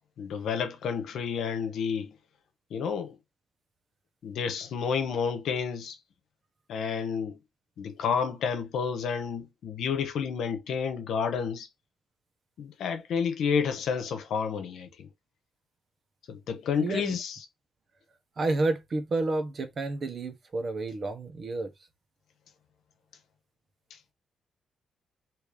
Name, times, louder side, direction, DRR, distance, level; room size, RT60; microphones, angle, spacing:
voice 1, 0.2-2.1 2.7-3.2 4.2-6.0 6.7-7.4 7.8-11.7 12.6-15.1 16.3-17.4, left 6 dB, 80° left, 1.0 m, -30 dB
voice 2, 16.8-17.2 18.4-21.7, right 2 dB, 50° right, 1.3 m, -30 dB
3.5 x 3.1 x 4.8 m
cardioid pair, 75°, 0 cm